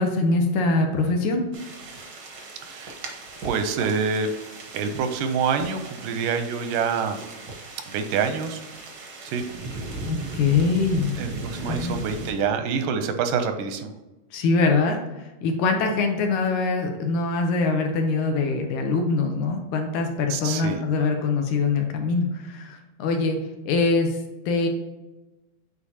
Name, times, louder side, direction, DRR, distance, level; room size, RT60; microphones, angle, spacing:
voice 1, 0.0-1.4 10.0-11.1 11.7-12.0 14.3-15.0 15.4-23.4 23.7-24.2 24.5-24.7, left 3 dB, 75° left, 4 dB, 2.1 m, -23 dB
sound 1, 1.5-12.3, right 2 dB, 70° right, 1.0 m, -37 dB
voice 2, 2.7-3.0 3.4-4.3 4.7-7.2 7.9-8.6 9.3-9.4 11.2-13.9 20.3-20.8, right 6 dB, 90° right, 8 dB, 2.2 m, -26 dB
8.3 x 4.3 x 2.8 m, 1.1 s
omnidirectional pair, 3.7 m